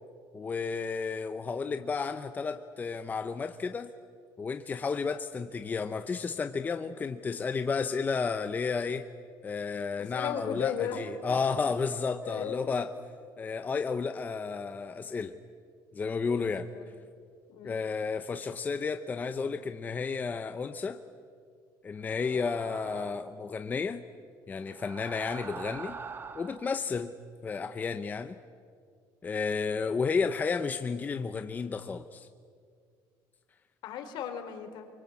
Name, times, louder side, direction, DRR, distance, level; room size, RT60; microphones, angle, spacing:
voice 1, 0.3-3.9 4.4-9.1 9.4-12.9 13.4-15.4 15.9-16.7 17.6-21.0 21.8-24.0 24.5-26.0 26.3-27.1 27.4-28.4 29.2-32.3, left 5 dB, 20° left, 8 dB, 0.7 m, -32 dB
voice 2, 10.0-11.0 12.2-12.7 16.2-16.8 17.5-17.9 22.9-23.0 33.8-34.9, left 9 dB, 60° left, 7 dB, 3.3 m, -36 dB
sound 1, 22.2-23.4 24.6-26.8, right 5 dB, 25° right, 1.0 m, -44 dB
27.5 x 24.5 x 8.3 m, 2.2 s
cardioid pair, 155°, 8 cm